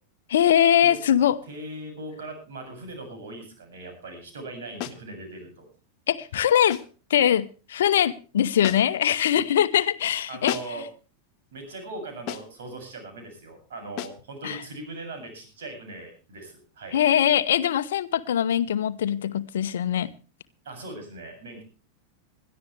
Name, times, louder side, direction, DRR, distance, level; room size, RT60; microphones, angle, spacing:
voice 1, 0.3-1.4 6.1-6.8 7.1-10.6 14.4-14.6 16.9-20.1, left 10 dB, 60° left, 0.9 m, -22 dB
voice 2, 1.5-5.7 10.3-10.8 11.5-17.0 20.6-21.6, right 2 dB, 60° right, 7.5 m, -39 dB
sound 1, 4.8-5.1 6.7-7.0 8.6-9.1 10.5-10.9 12.3-12.6 14.0-14.3, left 12 dB, 40° left, 1.4 m, -35 dB
21.5 x 13.5 x 3.3 m
figure-of-eight pair, 90°, 0 cm